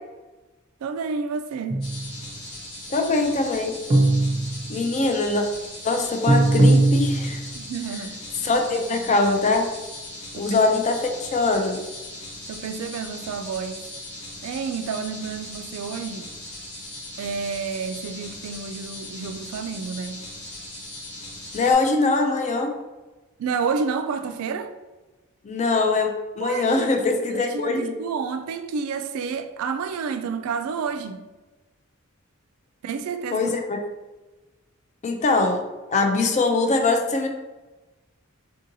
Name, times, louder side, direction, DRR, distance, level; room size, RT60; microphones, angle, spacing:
voice 1, 0.8-1.8 7.5-8.5 8.9-9.1 10.4-10.7 12.5-13.9 14.4-16.3 17.2-20.2 23.4-24.7 26.4-31.2 32.8-33.5, right 5 dB, 85° right, 0.3 m, -30 dB
sound 1, 1.7-2.3 3.9-4.9 6.3-7.6, right 2 dB, 30° right, 0.5 m, -19 dB
sound 2, 1.8-21.7, left 1 dB, 90° left, 1.3 m, -39 dB
voice 2, 2.9-3.8 4.7-5.4 5.8-7.4 8.4-9.7 10.3-11.8 21.5-22.7 25.4-26.1 26.4-28.0 33.3-33.8 35.0-35.6 35.9-37.3, left 3 dB, 35° left, 0.4 m, -22 dB
3.6 x 2.7 x 2.6 m
head